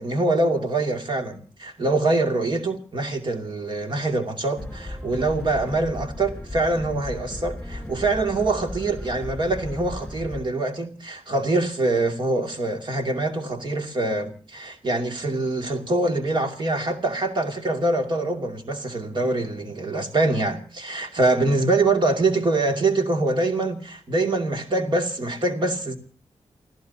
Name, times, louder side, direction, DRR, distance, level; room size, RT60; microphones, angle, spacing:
voice 1, 0.0-25.9, right 2 dB, 40° right, 2.6 m, -24 dB
sound 1, 4.6-10.4, left 1 dB, 10° left, 7.9 m, -36 dB
28.5 x 17.0 x 2.9 m
wide cardioid pair, 170°, 12 cm